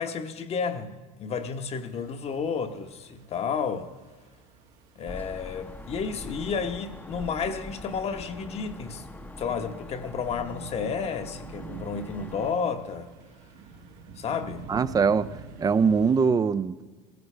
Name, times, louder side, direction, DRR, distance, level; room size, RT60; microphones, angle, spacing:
voice 1, 0.0-3.9 5.0-9.0 9.4-13.1 14.2-14.7, left 6 dB, 40° left, 7 dB, 1.0 m, -31 dB
sound 1, 1.3-16.3, right 4 dB, 80° right, 1.8 m, -48 dB
sound 2, 5.1-12.5, left 2 dB, 10° left, 0.8 m, -43 dB
voice 2, 14.7-15.3 15.6-16.8, right 5 dB, 20° right, 15 dB, 0.5 m, -22 dB
17.0 x 16.0 x 3.3 m, 1.4 s
supercardioid pair, 110°, 16 cm